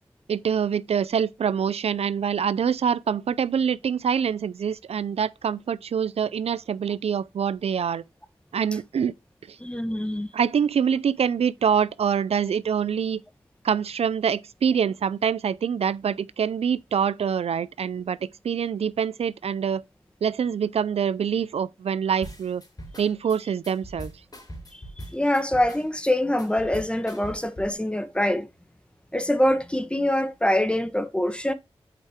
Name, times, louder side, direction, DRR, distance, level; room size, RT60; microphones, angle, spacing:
voice 1, 0.3-8.0 8.5-9.1 9.5-9.6 10.3-13.2 13.6-19.8 20.2-22.6 23.0-24.1, right 7 dB, 75° right, 0.4 m, -25 dB
voice 2, 9.6-10.3 24.7-24.8 25.1-28.5 29.1-31.5, left 1 dB, 10° left, 1.2 m, -24 dB
sound 1, 22.2-27.7, equal, 40° left, 3.6 m, -41 dB
8.1 x 4.7 x 3.5 m
cardioid pair, 40°, 11 cm